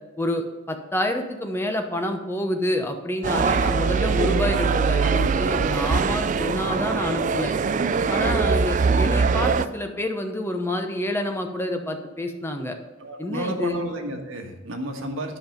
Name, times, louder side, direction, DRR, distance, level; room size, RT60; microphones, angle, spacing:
voice 1, 0.2-7.5 8.1-12.8 13.2-13.8, left 1 dB, 10° left, 4 dB, 0.8 m, -28 dB
sound 1, 3.2-9.7, right 5 dB, 40° right, 0.3 m, -22 dB
voice 2, 13.0-15.4, right 1 dB, 80° right, 3 dB, 1.5 m, -32 dB
10.5 x 5.5 x 5.2 m, 1.3 s
head